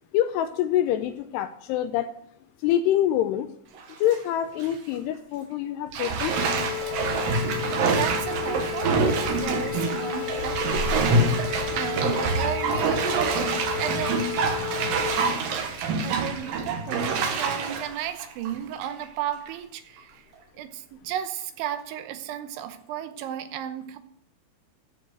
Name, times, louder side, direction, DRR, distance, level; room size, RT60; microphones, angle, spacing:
voice 1, 0.1-2.1 2.6-3.5 4.0-6.3, left 11 dB, 80° left, 10 dB, 2.4 m, -25 dB
Bathtub (filling or washing), 3.8-4.2 4.6-4.7 5.9-19.0 19.5-19.6, right 4 dB, 65° right, 2.5 m, -26 dB
sound 1, 6.3-15.3, left 14 dB, 65° left, 3.0 m, -33 dB
voice 2, 7.8-9.0 9.3-14.2 16.0-20.3 20.5-24.0, right 10 dB, 90° right, 9 dB, 3.3 m, -34 dB
14.0 x 4.9 x 9.1 m, 0.69 s
omnidirectional pair, 5.2 m